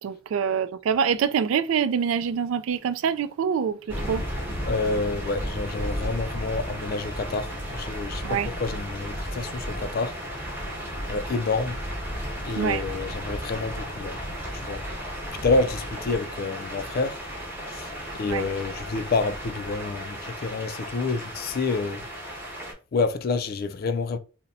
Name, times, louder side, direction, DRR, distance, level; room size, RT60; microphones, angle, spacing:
voice 1, 0.0-4.2 8.2-8.5 12.6-12.8 18.2-18.5, right 7 dB, 75° right, 0.3 m, -25 dB
sound 1, 3.9-22.7, equal, 10° right, 0.9 m, -34 dB
voice 2, 4.6-10.2 11.1-11.8 12.4-14.2 14.5-14.8 15.4-17.2 17.7-22.1 22.9-24.2, left 3 dB, 45° left, 0.3 m, -28 dB
2.6 x 2.1 x 3.9 m
head